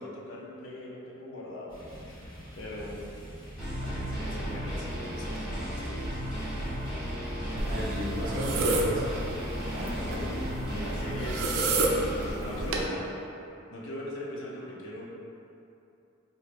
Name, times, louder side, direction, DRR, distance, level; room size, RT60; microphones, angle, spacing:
voice 1, 0.0-3.0 3.8-6.2 9.7-13.0 13.7-15.0, left 1 dB, 65° left, -3 dB, 0.6 m, -40 dB
sound 1, 1.7-10.0, equal, 20° left, 1.0 m, -45 dB
sound 2, 3.6-12.3, equal, 5° right, 0.8 m, -34 dB
voice 2, 7.5-9.2 10.8-11.1 12.4-12.9, equal, 40° right, -6 dB, 0.9 m, -36 dB
sound 3, 7.6-12.9, right 2 dB, 65° right, 0.4 m, -31 dB
4.5 x 2.7 x 2.5 m, 2.8 s
head